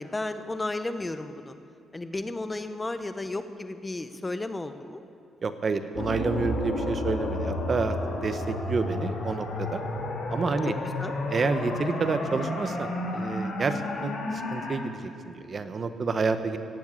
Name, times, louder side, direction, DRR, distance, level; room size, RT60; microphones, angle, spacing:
voice 1, 0.0-1.6 1.9-5.0 11.0-11.1, left 2 dB, 20° left, 9 dB, 0.9 m, -33 dB
voice 2, 5.4-8.0 8.2-9.8 10.3-10.7 11.3-16.6, right 4 dB, 40° right, 9 dB, 0.9 m, -29 dB
sound 1, 5.9-14.7, left 2 dB, 75° left, 2.7 m, -31 dB
17.0 x 7.2 x 8.4 m, 2.4 s
cardioid pair, 90°, 0 cm